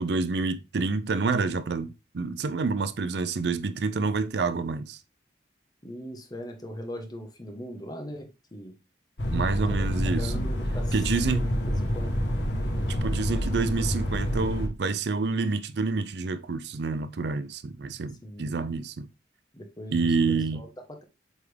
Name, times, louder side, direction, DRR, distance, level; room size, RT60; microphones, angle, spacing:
voice 1, 0.0-5.0 9.3-10.3 10.9-11.5 12.9-19.1 19.9-20.6, right 4 dB, 60° right, 0.5 m, -28 dB
voice 2, 5.8-8.7 9.7-9.9 10.2-11.0 11.3-11.5 11.9-12.1 18.2-18.5 19.5-21.0, equal, 20° left, 1.1 m, -40 dB
sound 1, 9.2-14.7, equal, 65° left, 1.2 m, -28 dB
8.0 x 3.6 x 3.4 m
head